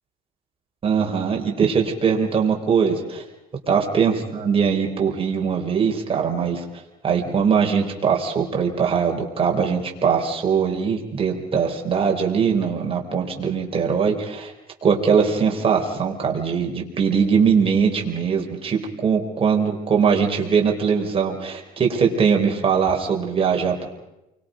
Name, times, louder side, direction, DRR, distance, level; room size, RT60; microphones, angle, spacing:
voice 1, 0.8-3.2 3.7-6.6 7.0-14.5 14.8-23.9, right 6 dB, 35° right, 1 dB, 4.2 m, -21 dB
29.5 x 24.0 x 5.2 m, 0.94 s
cardioid pair, 110°, 17 cm